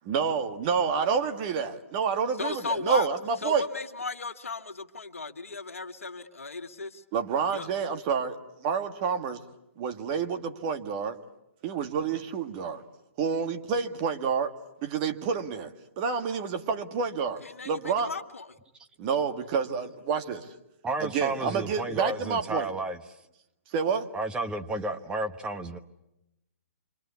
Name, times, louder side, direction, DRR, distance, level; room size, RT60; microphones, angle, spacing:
voice 1, 0.1-3.6 7.1-9.4 9.8-11.2 11.6-12.8 13.2-14.5 14.8-18.1 19.0-20.5 21.0-22.7 23.7-24.1, right 6 dB, 35° right, 8 dB, 2.0 m, -29 dB
voice 2, 2.4-3.1 3.4-7.0 7.5-7.7 17.4-18.6, left 4 dB, 80° left, 6 dB, 1.9 m, -35 dB
voice 3, 20.8-23.0 24.1-25.8, right 2 dB, 10° right, 7 dB, 1.3 m, -32 dB
28.0 x 25.0 x 8.4 m, 0.90 s
hypercardioid pair, 130°, 7 cm